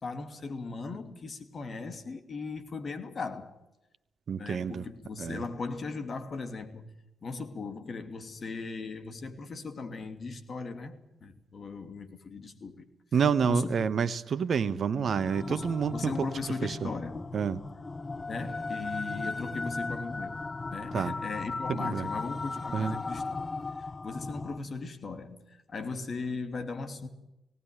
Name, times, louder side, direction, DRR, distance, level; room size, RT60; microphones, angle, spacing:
voice 1, 0.0-3.6 4.4-6.9 7.2-12.8 13.1-13.8 15.5-17.2 18.3-20.4 20.7-23.4 23.7-27.1, left 4 dB, 45° left, 2.8 m, -38 dB
voice 2, 4.3-4.8 5.2-5.4 13.1-16.3 16.6-16.9 17.3-17.6 20.9-21.1 21.8-22.1 22.7-22.9, right 6 dB, 55° right, 1.2 m, -28 dB
sound 1, 15.1-24.6, left 3 dB, 30° left, 1.1 m, -37 dB
18.5 x 18.0 x 9.0 m
hypercardioid pair, 45°, 0 cm